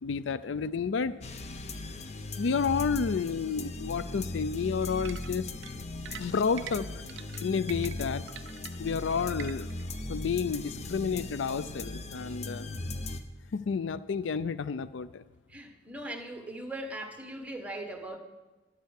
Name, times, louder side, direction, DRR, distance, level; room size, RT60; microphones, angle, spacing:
voice 1, 0.0-1.2 2.3-5.5 6.2-6.9 7.4-8.2 8.8-9.7 10.1-12.7 13.5-15.2, left 5 dB, 75° left, 16 dB, 0.4 m, -30 dB
sound 1, 1.2-13.2, left 2 dB, 35° left, 0.8 m, -38 dB
sound 2, 5.0-9.8, right 9 dB, 75° right, 0.6 m, -45 dB
voice 2, 15.5-18.2, right 1 dB, 5° right, 5 dB, 1.4 m, -39 dB
12.5 x 9.5 x 6.5 m, 1.2 s
head